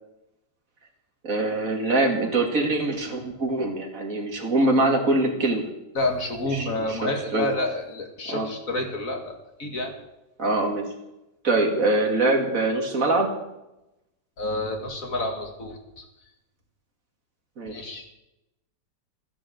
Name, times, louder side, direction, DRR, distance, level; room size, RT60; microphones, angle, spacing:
voice 1, 1.2-5.7 6.5-7.5 8.3-8.5 10.4-10.8 11.4-13.3 17.6-17.7, right 2 dB, 45° right, 2 dB, 2.6 m, -23 dB
voice 2, 5.9-10.0 14.4-16.0 17.7-18.1, left 2 dB, 45° left, 4 dB, 2.4 m, -29 dB
13.5 x 10.0 x 7.7 m, 0.93 s
omnidirectional pair, 2.0 m